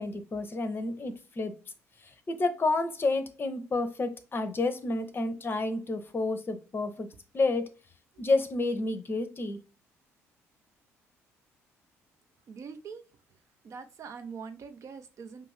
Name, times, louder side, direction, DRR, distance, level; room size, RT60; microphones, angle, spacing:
voice 1, 0.0-1.5 2.3-7.1 7.3-7.7 8.2-9.6, left 3 dB, 30° left, 0.7 m, -30 dB
voice 2, 12.5-13.0 13.6-15.5, right 5 dB, 45° right, 0.6 m, -43 dB
5.4 x 2.6 x 3.2 m
figure-of-eight pair, 50°, 7 cm